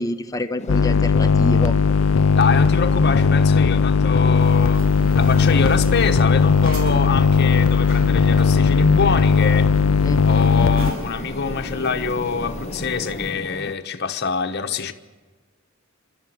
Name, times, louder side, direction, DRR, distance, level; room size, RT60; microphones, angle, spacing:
voice 1, 0.0-1.8 10.0-10.7, left 1 dB, 15° left, 1.1 m, -27 dB
sound 1, 0.6-13.8, left 2 dB, 30° left, 0.7 m, -35 dB
sound 2, 0.7-10.9, left 5 dB, 85° left, 0.6 m, -17 dB
voice 2, 2.4-4.8 5.2-9.7 10.3-14.9, left 4 dB, 50° left, 1.2 m, -24 dB
sound 3, 4.3-13.3, equal, 65° right, 3.7 m, -35 dB
28.5 x 12.5 x 9.3 m
head